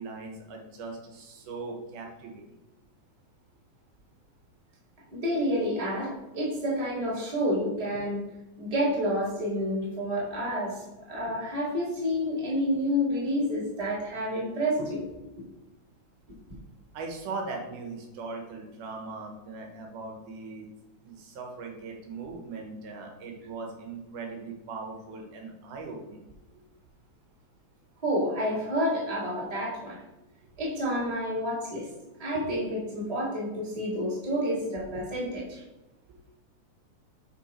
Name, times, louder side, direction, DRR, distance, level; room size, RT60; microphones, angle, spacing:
voice 1, 0.0-2.4 16.9-20.7 21.0-26.3 32.3-32.4 36.1-36.2, right 3 dB, 85° right, 1 dB, 2.7 m, -39 dB
voice 2, 5.1-8.2 8.6-15.0 28.0-30.0 30.6-31.9 32.2-35.6, equal, 15° right, -7 dB, 1.9 m, -29 dB
5.8 x 5.7 x 4.4 m, 1.0 s
omnidirectional pair, 3.5 m